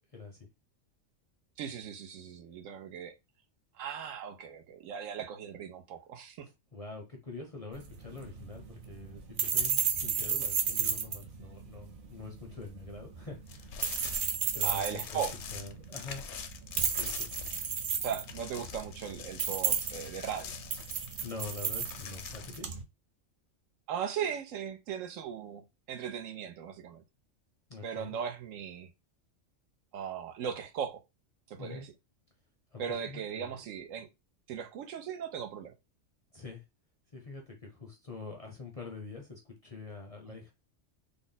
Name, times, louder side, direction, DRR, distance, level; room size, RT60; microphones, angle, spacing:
voice 1, 0.1-0.5 6.4-13.8 14.5-15.2 15.5-16.2 17.0-17.3 21.2-22.7 27.7-28.1 31.6-31.9 32.7-33.6 36.3-36.6 37.1-40.5, left 3 dB, 40° left, 0.5 m, -45 dB
voice 2, 1.6-3.1 3.7-6.5 14.6-15.3 18.0-20.5 23.9-25.6 25.9-27.0 27.8-28.9 29.9-31.0 31.5-31.9 32.8-34.1 34.5-35.7 40.3-40.4, right 8 dB, 80° right, 1.0 m, -38 dB
sound 1, 7.7-22.8, right 7 dB, 55° right, 0.6 m, -34 dB
sound 2, 13.5-17.9 18.2-22.6, left 7 dB, 70° left, 0.8 m, -44 dB
3.5 x 2.0 x 3.9 m
omnidirectional pair, 1.4 m